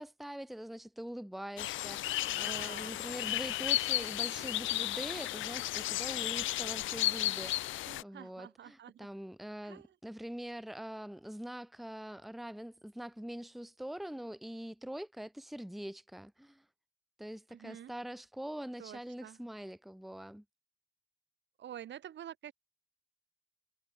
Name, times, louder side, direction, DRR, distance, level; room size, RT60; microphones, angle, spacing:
voice 1, 0.0-16.6 17.2-20.4, equal, ahead, 1.1 m, -44 dB
sound 1, 1.6-8.0, left 15 dB, 80° left, 0.7 m, -34 dB
voice 2, 2.3-2.9 7.9-9.1 9.6-9.9 17.5-17.9 18.8-19.4 21.6-22.5, right 10 dB, 65° right, 2.5 m, -48 dB
cardioid pair, 90°, 20 cm